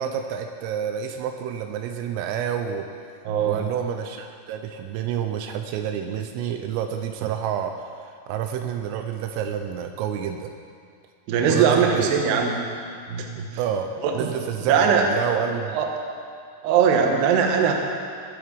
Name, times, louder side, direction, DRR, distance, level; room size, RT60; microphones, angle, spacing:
voice 1, 0.0-2.9 3.5-7.7 8.0-10.5 11.5-12.2 13.6-15.8, right 8 dB, 85° right, 5 dB, 3.3 m, -29 dB
voice 2, 3.2-3.6 11.3-12.6 13.1-13.6 14.0-14.3 14.6-15.1 15.7-15.9 16.6-17.7, right 7 dB, 65° right, 2 dB, 2.9 m, -20 dB
21.5 x 7.8 x 5.3 m, 2.3 s
omnidirectional pair, 5.9 m